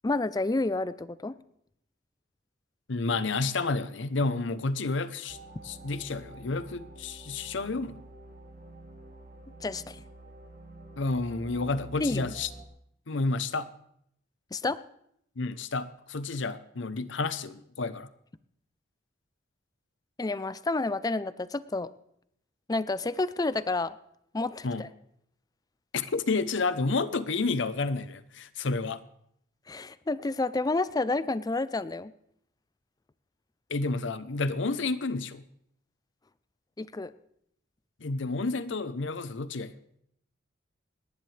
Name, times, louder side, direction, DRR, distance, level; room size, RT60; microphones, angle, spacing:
voice 1, 0.0-1.4 9.6-10.0 12.0-12.3 14.5-14.8 20.2-21.9 22.7-23.9 24.3-24.9 29.7-32.1 36.8-37.1, left 2 dB, 20° left, 0.4 m, -30 dB
voice 2, 2.9-5.4 5.6-8.0 11.0-12.5 13.1-13.7 15.4-18.1 24.6-24.8 25.9-29.0 33.7-35.5 38.0-39.7, left 3 dB, 70° left, 0.7 m, -30 dB
sound 1, 5.3-12.6, right 2 dB, 45° right, 1.9 m, -48 dB
28.5 x 10.5 x 3.3 m
head